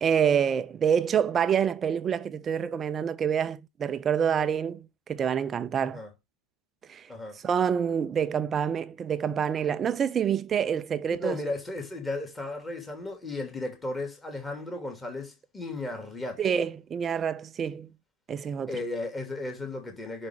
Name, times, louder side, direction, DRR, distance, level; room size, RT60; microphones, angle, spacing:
voice 1, 0.0-6.0 6.9-7.1 7.4-11.4 16.4-17.9 18.3-18.8, right 8 dB, 25° right, 0.6 m, -27 dB
voice 2, 11.2-16.5 18.7-20.3, left 2 dB, 10° left, 2.8 m, -35 dB
10.5 x 4.4 x 3.7 m
figure-of-eight pair, 90°, 0 cm